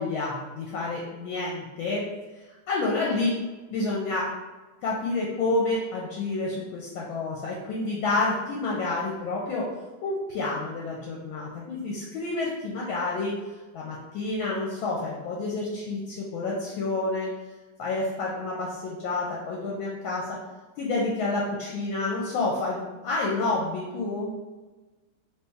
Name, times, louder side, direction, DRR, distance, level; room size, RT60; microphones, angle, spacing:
voice 1, 0.0-2.0 2.7-3.4 3.7-4.3 4.8-9.7 10.0-13.3 13.7-17.3 17.8-20.4 20.8-24.3, left 2 dB, 75° left, -3 dB, 1.3 m, -29 dB
3.1 x 3.0 x 3.4 m, 1.2 s
omnidirectional pair, 2.4 m